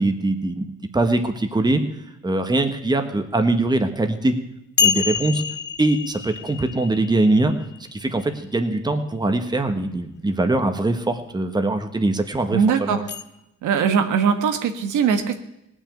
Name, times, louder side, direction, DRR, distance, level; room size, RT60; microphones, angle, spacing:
voice 1, 0.0-1.8 2.2-4.3 4.8-5.4 5.8-7.5 7.9-13.0, right 2 dB, 15° right, 6 dB, 1.4 m, -22 dB
sound 1, 4.8-8.4 13.1-13.2, left 7 dB, 35° left, 0.9 m, -26 dB
voice 2, 12.5-13.0 13.6-15.4, right 6 dB, 80° right, 7 dB, 1.3 m, -20 dB
17.5 x 6.4 x 8.8 m, 0.86 s
cardioid pair, 90°, 30 cm